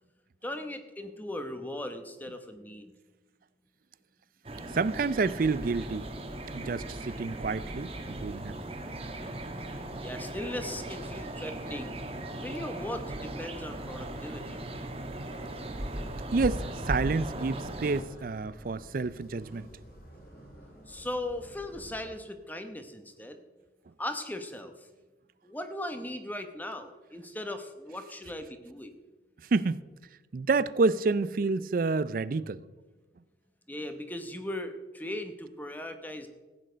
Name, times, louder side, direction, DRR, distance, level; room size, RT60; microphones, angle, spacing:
voice 1, 0.4-2.9 10.0-12.0 12.4-14.6 20.9-23.4 24.0-24.7 25.4-29.0 33.7-36.3, left 1 dB, 10° left, 0.9 m, -38 dB
sound 1, 4.4-18.0, right 1 dB, 30° right, 1.3 m, -38 dB
voice 2, 4.7-6.1 6.5-8.6 16.3-19.7 29.5-29.8 30.3-32.6, right 3 dB, 50° right, 0.4 m, -29 dB
sound 2, 7.8-22.1, right 1 dB, 55° left, 2.6 m, -53 dB
15.5 x 8.9 x 5.1 m
head